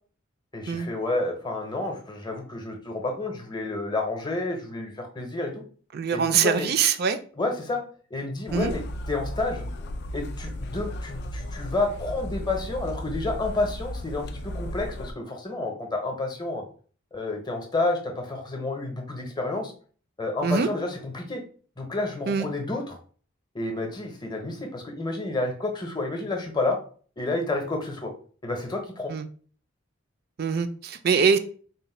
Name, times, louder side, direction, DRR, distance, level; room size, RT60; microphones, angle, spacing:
voice 1, 0.5-5.6 6.1-6.7 7.3-7.8 8.1-9.7 10.1-16.6 17.1-19.7 20.2-21.4 21.8-23.0 23.5-26.8 27.2-28.1 28.4-29.1, left 2 dB, 20° left, 2 dB, 0.7 m, -30 dB
voice 2, 5.9-7.2 8.5-8.7 20.4-20.7 22.3-22.5 29.1-29.3 30.4-31.4, right 6 dB, 50° right, 10 dB, 0.4 m, -23 dB
sound 1, 8.5-15.1, equal, 50° left, 0.3 m, -35 dB
4.0 x 2.1 x 4.2 m, 0.43 s
head